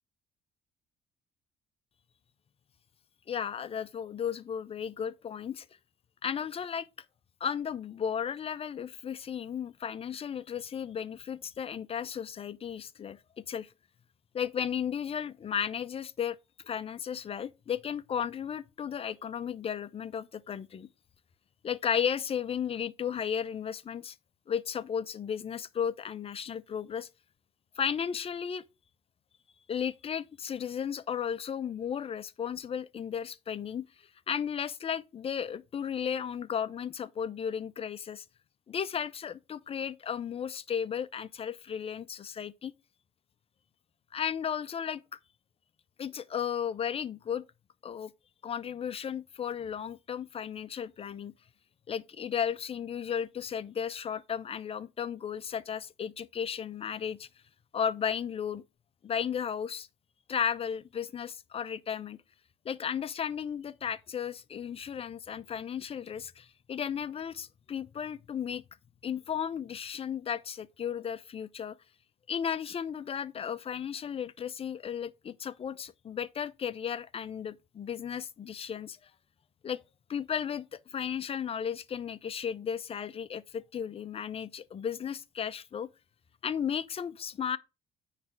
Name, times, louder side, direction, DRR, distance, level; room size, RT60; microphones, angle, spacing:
voice 1, 3.3-5.7 6.2-6.9 7.4-13.2 13.5-13.7 14.3-16.4 16.6-20.9 21.6-24.2 24.5-27.1 27.8-28.6 29.7-33.8 34.3-38.2 38.7-42.7 44.1-45.0 46.0-47.4 47.8-48.1 48.4-51.3 51.9-57.3 57.7-58.6 59.0-59.9 60.3-62.2 62.6-68.6 69.0-71.8 72.3-79.0 79.6-79.8 80.1-85.9 86.4-87.6, left 8 dB, 35° left, 0.6 m, -34 dB
9.3 x 3.3 x 5.8 m
cardioid pair, 110°, 17 cm